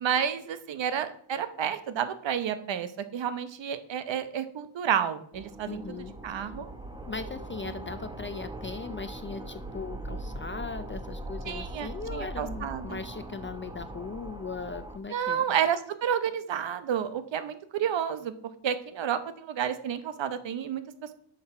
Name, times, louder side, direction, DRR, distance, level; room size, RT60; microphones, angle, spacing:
voice 1, 0.0-6.7 11.5-13.0 15.1-18.3 18.6-21.1, right 8 dB, 60° right, 12 dB, 0.9 m, -30 dB
sound 1, 5.3-15.0, right 1 dB, 10° right, 0.9 m, -40 dB
voice 2, 5.7-6.5 7.1-15.4, left 4 dB, 25° left, 10 dB, 0.3 m, -39 dB
10.5 x 6.5 x 4.4 m, 0.64 s
wide cardioid pair, 125°, 50 cm